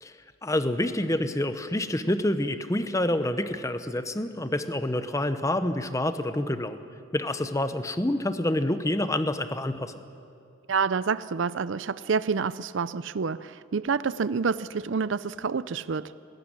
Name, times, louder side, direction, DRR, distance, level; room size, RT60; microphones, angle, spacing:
voice 1, 0.4-6.8 7.1-9.9, left 1 dB, 15° left, 10 dB, 0.8 m, -27 dB
voice 2, 10.7-16.1, right 5 dB, 65° right, 16 dB, 0.5 m, -28 dB
20.0 x 18.5 x 9.9 m, 2.5 s
head